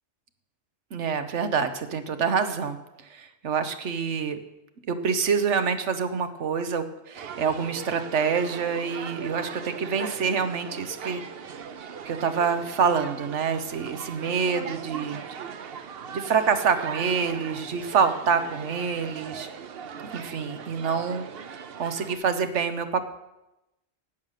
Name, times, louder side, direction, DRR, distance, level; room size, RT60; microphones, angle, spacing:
voice 1, 0.9-2.8 3.1-4.4 4.9-11.2 12.0-15.2 16.1-19.5 20.1-23.1, right 6 dB, 90° right, 9 dB, 1.3 m, -26 dB
sound 1, 7.1-22.2, right 7 dB, 60° right, 0.9 m, -39 dB
11.5 x 6.5 x 9.2 m, 0.94 s
omnidirectional pair, 1.2 m